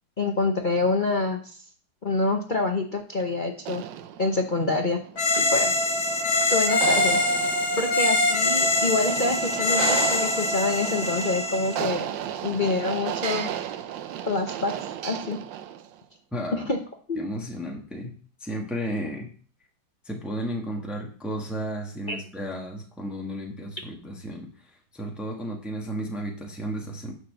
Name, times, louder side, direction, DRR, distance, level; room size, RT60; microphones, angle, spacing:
voice 1, 0.2-1.6 2.0-3.8 4.2-5.0 5.4-5.7 6.5-7.2 7.8-12.1 12.4-13.5 14.3-15.4 16.5-16.8 17.1-17.3 22.1-22.2, left 3 dB, 40° left, 3 dB, 0.8 m, -26 dB
sound 1, 3.6-15.9, right 10 dB, 90° right, 1.4 m, -34 dB
sound 2, 5.2-11.8, left 2 dB, 60° left, 2.4 m, -24 dB
voice 2, 16.3-16.7 17.2-18.1 18.4-19.3 20.0-27.1, equal, ahead, 0 dB, 1.5 m, -33 dB
10.0 x 4.9 x 6.8 m, 0.43 s
omnidirectional pair, 1.9 m